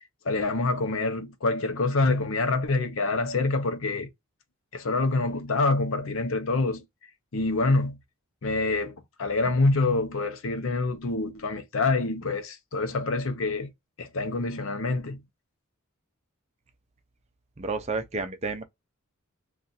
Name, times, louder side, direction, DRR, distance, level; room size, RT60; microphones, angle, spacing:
voice 1, 0.2-4.1 4.7-6.8 7.3-8.0 8.4-8.9 9.2-13.7 14.0-15.2, left 3 dB, 60° left, 0.7 m, -26 dB
voice 2, 17.6-18.6, right 3 dB, 30° right, 0.5 m, -31 dB
2.5 x 2.4 x 4.0 m
head